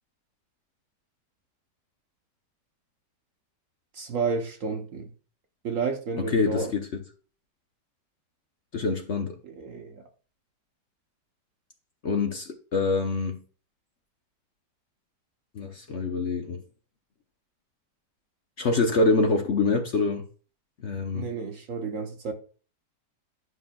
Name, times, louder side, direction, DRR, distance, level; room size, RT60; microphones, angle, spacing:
voice 1, 3.9-5.1 5.6-6.7 9.4-10.0 21.1-22.3, right 4 dB, 60° right, 0.9 m, -31 dB
voice 2, 6.3-6.9 8.7-9.4 12.0-13.4 15.5-16.6 18.6-20.2 20.8-21.3, left 3 dB, 50° left, 0.9 m, -25 dB
11.0 x 5.8 x 2.3 m
omnidirectional pair, 1.8 m